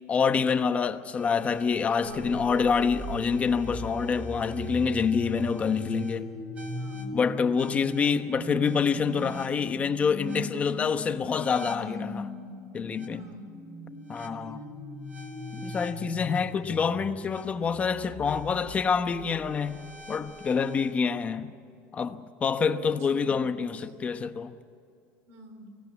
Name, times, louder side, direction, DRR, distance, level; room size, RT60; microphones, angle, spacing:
voice 1, 0.1-6.3 7.1-12.3 12.7-13.2 14.1-14.6 15.5-21.5 21.9-24.5, left 6 dB, 25° left, 1.0 m, -27 dB
sound 1, 1.2-20.9, equal, 25° right, 3.2 m, -39 dB
voice 2, 1.8-2.4 6.7-7.2 10.4-11.4 13.1-13.6 22.6-23.6 25.3-25.7, right 3 dB, 60° right, 3.9 m, -44 dB
25.0 x 18.0 x 8.5 m
cardioid pair, 135°, 5 cm